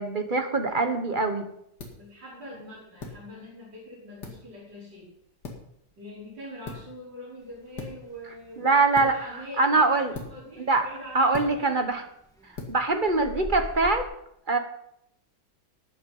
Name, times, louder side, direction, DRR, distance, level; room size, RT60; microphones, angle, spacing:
voice 1, 0.0-1.5 8.6-9.1 9.6-10.1 10.7-10.9 11.1-12.0 12.7-14.1 14.5-14.6, right 3 dB, 30° right, 6 dB, 1.2 m, -23 dB
rubber band snap, 0.6-14.1, left 3 dB, 70° left, 2.9 m, -45 dB
voice 2, 2.0-5.1 6.0-11.8, left 1 dB, 85° right, -6 dB, 5.9 m, -43 dB
sound 1, 7.4-9.5 9.7-14.0, equal, ahead, 1.6 m, -41 dB
13.5 x 9.5 x 5.5 m, 0.75 s
omnidirectional pair, 1.9 m